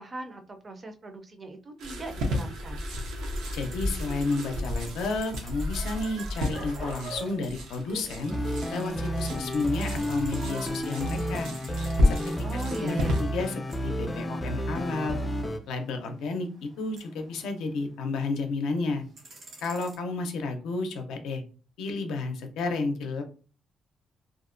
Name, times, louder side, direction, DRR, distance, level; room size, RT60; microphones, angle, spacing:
voice 1, 0.0-2.9 12.4-13.3, right 2 dB, 35° right, 6 dB, 0.5 m, -39 dB
sound 1, 1.8-13.2, left 1 dB, 90° right, 0.6 m, -32 dB
sound 2, 3.4-8.8 9.1-18.4 18.8-20.0, right 2 dB, 65° right, 1.0 m, -48 dB
voice 2, 3.5-8.3 8.7-11.5 12.0-12.2 12.5-15.2 15.7-19.0 19.6-21.4 21.8-23.2, left 3 dB, 85° left, 5 dB, 0.4 m, -31 dB
sound 3, 8.3-15.6, equal, 25° left, 0.4 m, -31 dB
2.5 x 2.1 x 2.5 m, 0.38 s
cardioid pair, 90°, 0 cm